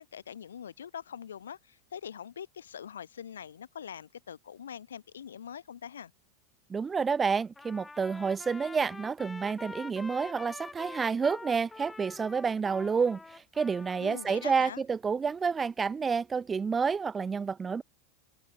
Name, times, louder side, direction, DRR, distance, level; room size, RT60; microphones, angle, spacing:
voice 1, 0.0-6.1 14.0-14.8, left 8 dB, 80° left, 2.2 m, -43 dB
voice 2, 6.7-17.8, right 5 dB, 20° right, 0.3 m, -29 dB
Trumpet, 7.5-14.7, left 3 dB, 15° left, 1.5 m, -46 dB
hypercardioid pair, 90°, 0 cm